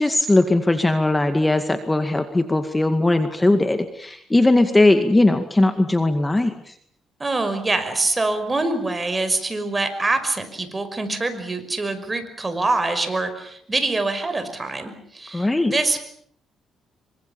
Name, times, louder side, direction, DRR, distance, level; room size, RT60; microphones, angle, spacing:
voice 1, 0.0-6.7 15.3-15.7, left 2 dB, 15° left, 8 dB, 2.1 m, -19 dB
voice 2, 7.2-16.0, right 2 dB, 20° right, 9 dB, 5.7 m, -24 dB
27.5 x 24.5 x 7.2 m, 0.66 s
cardioid pair, 90°, 0 cm